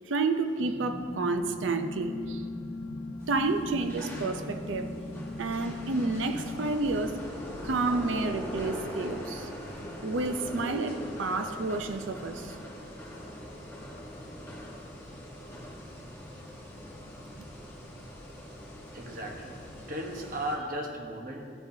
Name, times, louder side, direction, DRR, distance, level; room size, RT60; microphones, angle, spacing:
voice 1, 0.1-2.4 3.3-4.9 5.4-7.2 7.6-9.5 10.0-12.6, right 3 dB, 90° right, 7 dB, 0.6 m, -30 dB
sound 1, 0.6-6.6, left 2 dB, 60° left, 0.9 m, -39 dB
sound 2, 3.2-20.5, equal, 15° left, 1.2 m, -42 dB
voice 2, 18.9-21.4, right 1 dB, 45° right, 1 dB, 1.1 m, -36 dB
13.5 x 6.7 x 2.8 m, 2.2 s
head